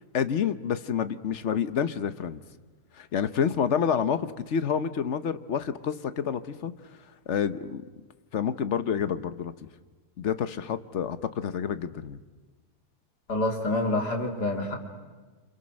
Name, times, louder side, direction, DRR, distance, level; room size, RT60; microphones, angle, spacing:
voice 1, 0.1-2.4 3.0-6.7 7.3-7.8 8.3-9.5 10.2-12.2, left 7 dB, 50° left, 12 dB, 1.2 m, -28 dB
voice 2, 13.3-14.8, left 2 dB, 85° left, 2 dB, 3.7 m, -27 dB
29.0 x 27.0 x 6.5 m, 1.3 s
omnidirectional pair, 1.7 m